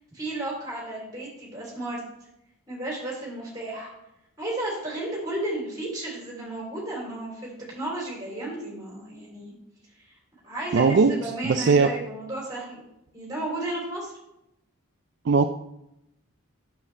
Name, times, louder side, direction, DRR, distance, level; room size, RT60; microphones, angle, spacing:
voice 1, 0.1-2.0 2.7-3.9 4.4-9.5 10.4-12.8 13.1-14.1, right 1 dB, 20° right, -4 dB, 3.2 m, -33 dB
voice 2, 10.7-11.1 11.4-11.9 15.3-15.5, right 4 dB, 55° right, 7 dB, 0.4 m, -19 dB
8.6 x 7.1 x 3.2 m, 0.83 s
head